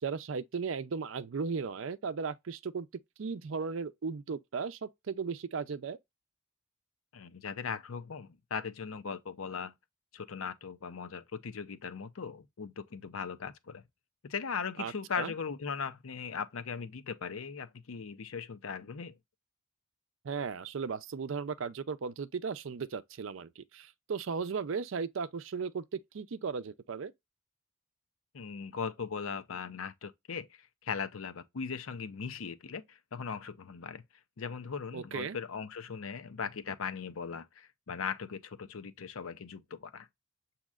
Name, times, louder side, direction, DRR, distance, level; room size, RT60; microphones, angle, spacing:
voice 1, 0.0-2.9 3.2-6.0 14.8-15.3 20.2-27.1 34.9-35.4, right 5 dB, 65° right, 0.5 m, -36 dB
voice 2, 7.1-9.7 10.1-13.8 14.2-19.2 28.3-34.0 34.4-40.1, left 6 dB, 85° left, 0.6 m, -39 dB
7.3 x 2.8 x 2.3 m
head